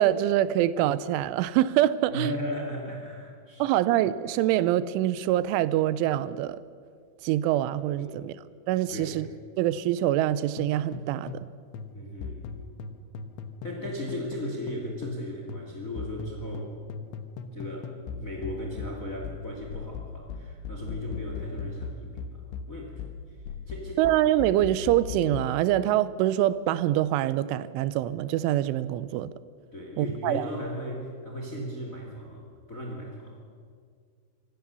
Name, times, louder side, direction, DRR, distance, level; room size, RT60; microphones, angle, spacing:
voice 1, 0.0-2.3 3.6-6.6 7.2-8.3 8.7-9.3 9.6-11.5 24.0-29.3 30.0-30.5, right 13 dB, 90° right, 3.2 m, -25 dB
voice 2, 2.1-3.8 8.0-8.2 8.9-9.2 11.9-12.8 13.6-16.7 17.5-23.4 23.7-24.0 29.7-33.4, left 1 dB, 30° left, 1.6 m, -36 dB
sound 1, 10.6-11.5 11.7-15.2 15.5-25.6, left 5 dB, 80° left, 3.4 m, -38 dB
25.5 x 16.0 x 7.0 m
omnidirectional pair, 5.4 m